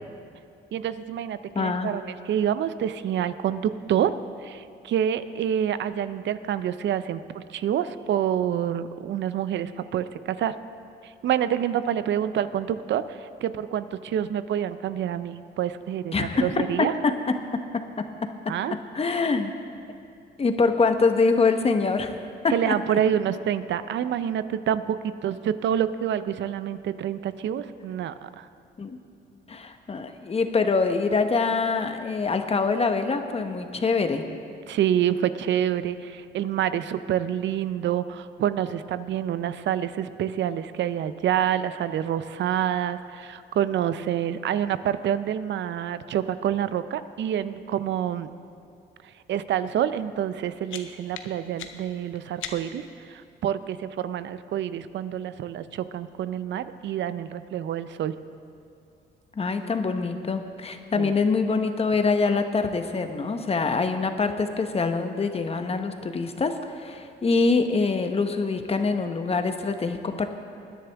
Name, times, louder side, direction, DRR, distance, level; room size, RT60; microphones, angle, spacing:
voice 1, 0.7-4.1 4.4-10.6 11.0-16.9 18.5-18.8 22.5-28.5 34.7-48.3 49.3-58.1 61.0-61.1, right 10 dB, 65° right, 13 dB, 0.6 m, -27 dB
voice 2, 1.5-2.0 16.1-16.6 18.9-19.5 20.4-22.2 22.7-22.8 28.8-29.0 29.5-34.3 59.3-70.3, left 4 dB, 30° left, 7 dB, 1.0 m, -24 dB
sound 1, 50.2-52.9, left 7 dB, 80° left, 0.9 m, -41 dB
20.5 x 10.0 x 3.5 m, 2.6 s
cardioid pair, 90°, 20 cm